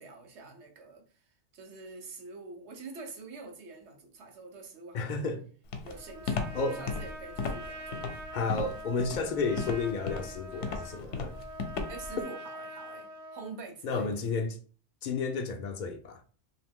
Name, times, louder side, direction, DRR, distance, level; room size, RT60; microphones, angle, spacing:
voice 1, 0.0-5.3 5.8-8.2 11.9-14.2, right 4 dB, 75° right, 1.1 m, -46 dB
voice 2, 4.9-5.4 6.5-6.8 8.3-11.4 13.8-14.6 15.0-16.2, left 4 dB, 60° left, 0.5 m, -32 dB
Walk footsteps, 5.7-12.2, left 4 dB, 75° left, 0.9 m, -35 dB
Trumpet, 5.9-13.6, right 1 dB, 40° right, 0.7 m, -44 dB
2.8 x 2.5 x 3.5 m
omnidirectional pair, 1.2 m